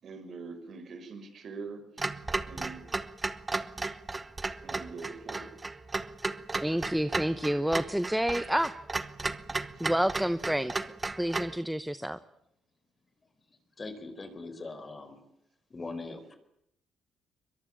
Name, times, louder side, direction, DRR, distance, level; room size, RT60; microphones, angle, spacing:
voice 1, 0.0-2.8 4.6-5.5, right 4 dB, 55° right, 7 dB, 5.9 m, -44 dB
Clock, 2.0-11.6, right 3 dB, 25° right, 1.4 m, -35 dB
voice 2, 6.6-8.7 9.8-10.7 11.2-12.2, equal, 5° right, 12 dB, 1.0 m, -29 dB
voice 3, 13.8-15.2 15.7-16.4, left 3 dB, 30° left, 10 dB, 4.4 m, -41 dB
23.0 x 22.0 x 8.7 m, 0.77 s
cardioid pair, 90°, 0 cm